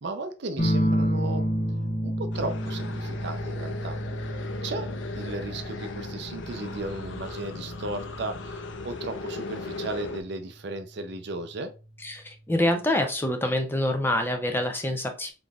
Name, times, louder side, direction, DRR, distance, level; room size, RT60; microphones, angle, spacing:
voice 1, 0.0-1.5 2.0-4.0 4.6-4.9 5.2-11.7, right 2 dB, 60° right, 8 dB, 0.5 m, -35 dB
sound 1, 0.6-9.7 11.1-11.7, equal, 40° left, 0.9 m, -31 dB
sound 2, 2.3-10.2, left 3 dB, 75° left, 0.6 m, -38 dB
voice 2, 12.0-15.3, left 1 dB, 10° left, 5 dB, 0.5 m, -26 dB
3.8 x 3.8 x 2.3 m, 0.32 s
head